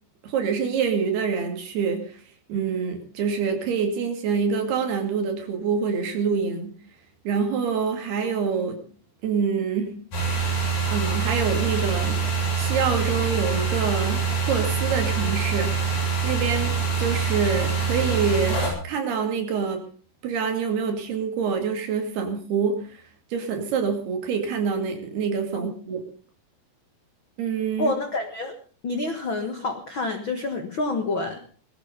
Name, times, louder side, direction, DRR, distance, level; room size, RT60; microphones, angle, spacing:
voice 1, 0.2-2.1 2.5-6.7 7.2-8.8 9.2-10.0 10.9-12.2 12.6-15.7 16.2-19.8 20.2-23.0 23.3-26.0 27.4-27.9, right 6 dB, 70° right, 4 dB, 4.3 m, -26 dB
sound 1, 10.1-18.7, right 5 dB, 45° left, 8.8 m, -25 dB
voice 2, 27.8-28.5 28.8-31.4, left 2 dB, 85° left, 5 dB, 1.0 m, -28 dB
19.5 x 13.5 x 5.2 m, 0.42 s
omnidirectional pair, 4.9 m